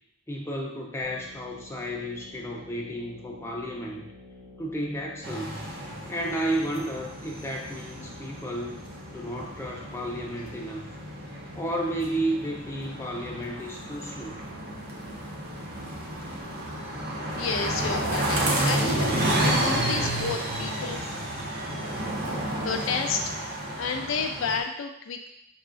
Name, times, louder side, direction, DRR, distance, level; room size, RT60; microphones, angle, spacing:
voice 1, 0.3-4.0 4.6-5.7 6.1-8.8 9.1-10.9 11.5-14.4, right 1 dB, 15° left, -2 dB, 0.5 m, -32 dB
sound 1, 1.0-17.0, left 2 dB, 80° right, 1.2 m, -49 dB
sound 2, 5.2-24.6, right 1 dB, 50° right, 0.7 m, -31 dB
voice 2, 17.2-22.3 22.6-23.5 23.8-25.3, left 5 dB, 85° left, 5 dB, 0.4 m, -32 dB
5.5 x 2.3 x 2.4 m, 0.74 s
head